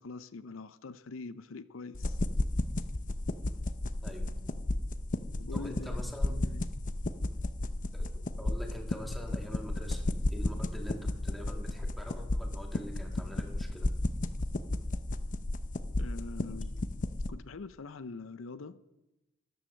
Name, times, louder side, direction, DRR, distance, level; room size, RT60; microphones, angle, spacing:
voice 1, 0.0-2.2 5.4-6.0 6.3-6.7 16.0-16.8 17.3-18.8, left 4 dB, 85° left, 14 dB, 0.6 m, -44 dB
sound 1, 1.9-17.3, left 2 dB, 40° left, 0.7 m, -33 dB
voice 2, 4.0-4.5 5.5-6.4 7.9-8.1 8.4-10.1 10.3-13.9, equal, ahead, 1 dB, 2.0 m, -44 dB
13.5 x 11.0 x 6.4 m, 0.97 s
head